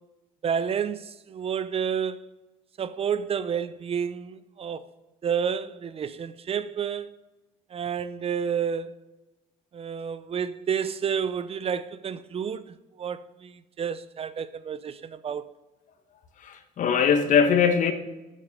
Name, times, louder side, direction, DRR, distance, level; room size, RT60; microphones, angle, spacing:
voice 1, 0.4-2.2 2.8-4.9 5.2-7.1 7.7-8.9 9.7-15.4, right 7 dB, 40° right, 0.6 m, -30 dB
voice 2, 16.4-17.9, left 7 dB, 60° left, 1.2 m, -21 dB
7.3 x 6.7 x 5.3 m
supercardioid pair, 85°, 15 cm